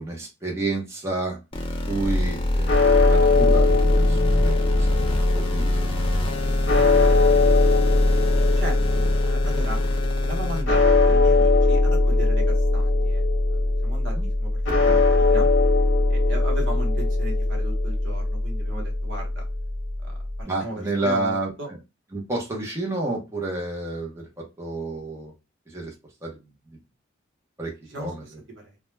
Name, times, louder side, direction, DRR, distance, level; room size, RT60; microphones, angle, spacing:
voice 1, 0.0-1.4 1.9-5.9 6.4-6.8 14.2-14.3 20.4-21.5 22.1-25.3 25.7-25.9 26.2-26.4 27.6-28.2, right 2 dB, 15° right, -1 dB, 0.6 m, -30 dB
sound 1, 1.5-10.6, left 1 dB, 30° left, 0.5 m, -29 dB
sound 2, 2.0-20.4, left 2 dB, 65° left, 0.7 m, -20 dB
voice 2, 8.6-9.8 10.2-13.2 13.5-15.5 16.1-19.4 20.0-21.7 27.9-28.3 28.6-28.7, right 1 dB, 75° right, 1 dB, 0.9 m, -36 dB
2.2 x 2.1 x 3.0 m, 0.25 s
head